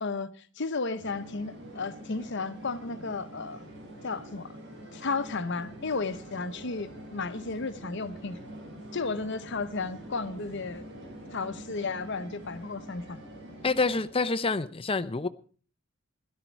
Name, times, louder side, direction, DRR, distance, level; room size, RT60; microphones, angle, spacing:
voice 1, 0.0-3.6 4.0-4.5 4.9-8.4 8.9-10.8 11.3-13.2, left 4 dB, 60° left, 1.0 m, -33 dB
sound 1, 1.0-14.1, right 1 dB, 60° right, 6.9 m, -45 dB
voice 2, 13.6-15.3, left 3 dB, 25° left, 0.7 m, -27 dB
16.5 x 12.5 x 4.6 m
head